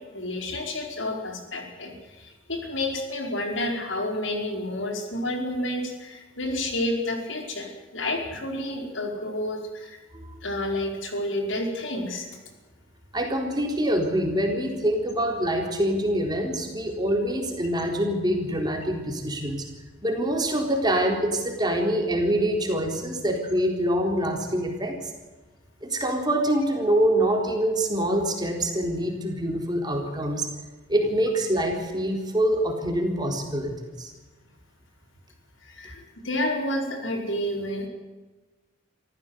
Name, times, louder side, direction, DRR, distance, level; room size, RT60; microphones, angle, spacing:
voice 1, 0.1-10.0 10.4-12.3 35.6-37.9, left 1 dB, 70° left, 2 dB, 5.0 m, -30 dB
voice 2, 13.1-19.7 20.0-25.1 25.8-30.5 30.9-34.1, right 1 dB, 20° right, 2 dB, 3.9 m, -25 dB
26.0 x 15.0 x 8.1 m, 1.3 s
head